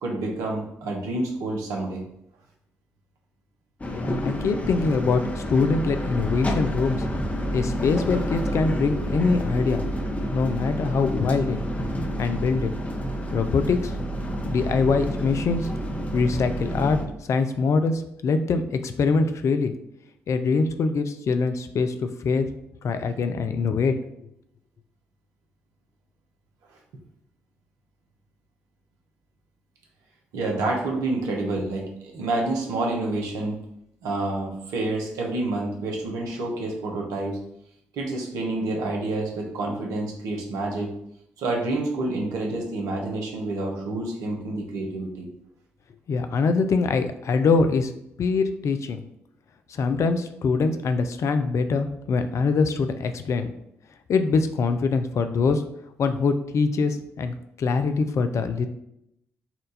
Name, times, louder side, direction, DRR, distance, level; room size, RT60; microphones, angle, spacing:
voice 1, 0.0-2.0 30.3-33.6 34.0-37.4 37.9-40.9 41.4-45.3, right 2 dB, 75° right, 0 dB, 1.0 m, -28 dB
sound 1, 3.8-17.0, equal, 25° left, 0.8 m, -29 dB
voice 2, 3.9-7.0 7.5-9.8 10.3-11.6 12.2-12.7 13.3-13.9 14.5-15.7 16.1-17.0 17.3-19.7 20.3-22.5 22.8-23.9 46.1-47.9 48.2-49.0 49.7-53.5 54.1-55.6 56.0-58.7, left 4 dB, 55° left, 9 dB, 0.5 m, -23 dB
4.3 x 2.5 x 4.0 m, 0.77 s
hypercardioid pair, 45°, 6 cm